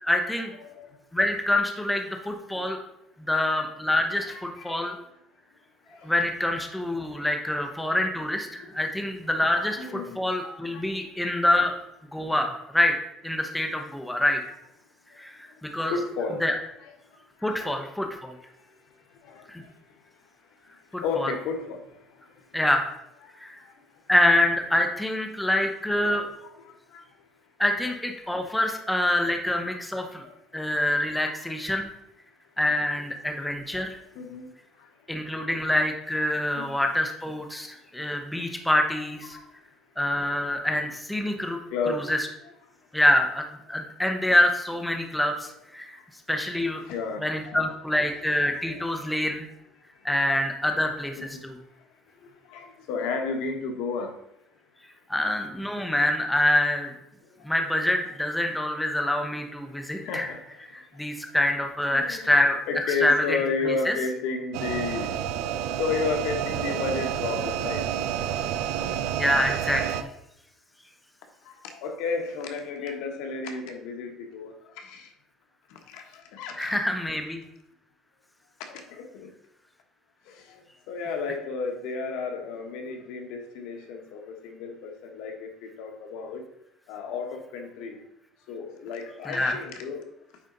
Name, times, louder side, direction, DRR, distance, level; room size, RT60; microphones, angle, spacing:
voice 1, 0.0-0.5 1.1-2.8 3.2-4.9 6.0-11.7 12.1-12.9 13.2-14.4 15.2-15.9 16.4-16.5 17.4-18.3 19.5-19.6 20.9-21.3 22.5-22.9 23.4-23.6 24.1-26.3 27.6-30.2 30.5-31.9 32.6-34.0 35.1-39.4 40.0-41.6 41.9-42.2 42.9-46.0 46.3-46.8 47.2-49.5 50.0-51.1 51.4-51.6 55.1-56.9 57.4-60.3 60.7-63.4 63.7-63.9 69.2-70.1 76.6-77.4 89.3-89.5, left 1 dB, 5° left, 4 dB, 0.8 m, -26 dB
voice 2, 0.6-1.0 4.1-4.8 5.9-6.1 7.2-7.6 8.6-8.8 9.5-11.2 15.8-16.9 17.4-17.9 19.2-19.7 21.0-22.0 23.2-23.3 26.1-27.0 30.2-30.4 31.2-31.4 31.7-31.8 34.1-34.5 34.8-34.9 36.5-36.8 38.3-38.4 38.9-39.0 39.3-39.5 41.5-42.1 46.8-47.8 48.4-49.2 50.7-50.8 51.2-51.4 52.2-54.2 57.4-57.5 59.8-60.4 61.9-62.3 62.7-65.1 65.8-67.9 71.4-75.1 75.7-76.8 78.7-79.3 80.3-86.4 86.9-88.0 88.5-90.1, left 4 dB, 80° left, 4 dB, 1.2 m, -33 dB
sound 1, 64.5-70.0, right 9 dB, 90° right, 0.5 m, -29 dB
9.1 x 4.0 x 3.9 m, 0.80 s
cardioid pair, 155°, 0 cm